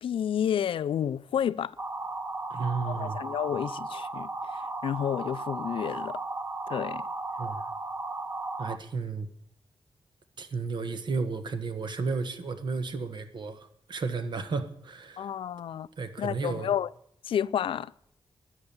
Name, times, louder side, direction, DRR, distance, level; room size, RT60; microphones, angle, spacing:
voice 1, 0.0-1.8 2.9-6.2 6.7-7.0 15.2-15.9 16.2-16.9 17.2-17.9, left 9 dB, 80° left, 0.4 m, -30 dB
sound 1, 1.8-8.8, right 2 dB, 30° right, 0.9 m, -35 dB
voice 2, 2.5-3.2 7.4-7.6 8.6-9.3 10.4-15.3 16.0-16.7, right 4 dB, 60° right, 1.4 m, -33 dB
13.0 x 9.9 x 7.0 m
wide cardioid pair, 120°, 9 cm